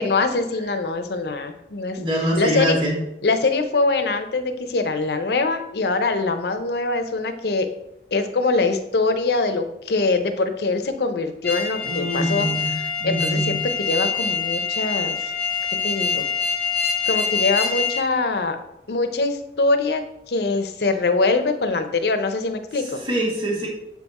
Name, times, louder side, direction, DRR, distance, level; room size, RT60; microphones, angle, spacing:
voice 1, 0.0-2.0 2.4-2.8 3.2-7.7 8.1-12.5 12.7-13.6 13.9-15.3 15.8-16.3 17.1-18.6 18.9-20.0 20.3-23.0, left 3 dB, 65° left, 7 dB, 0.6 m, -23 dB
voice 2, 2.0-2.9 11.8-12.7 13.0-13.5 23.0-23.7, right 1 dB, 25° right, -3 dB, 1.5 m, -24 dB
sound 1, 11.4-18.1, left 6 dB, 10° left, 0.8 m, -25 dB
7.4 x 3.6 x 4.1 m, 0.83 s
head